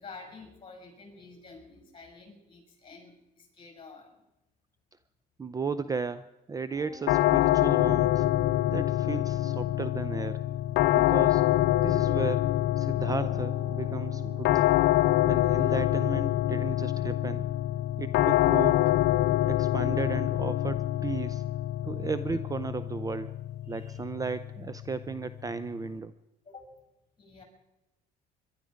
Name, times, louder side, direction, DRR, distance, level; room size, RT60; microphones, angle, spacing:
voice 1, 0.0-4.2 23.6-24.0 26.4-26.7 27.2-27.4, left 4 dB, 30° left, 2 dB, 6.3 m, -49 dB
voice 2, 5.4-8.3 8.7-10.4 10.9-11.5 11.8-14.7 15.2-17.5 18.0-19.0 19.5-21.4 21.8-23.3 23.7-26.1, right 4 dB, 20° right, 14 dB, 0.5 m, -35 dB
Piano, 6.7-23.9, right 3 dB, 50° right, 3.9 m, -52 dB
sound 1, 7.1-26.0, left 14 dB, 80° left, 0.7 m, -26 dB
22.5 x 12.0 x 5.1 m, 0.93 s
cardioid pair, 110°, 17 cm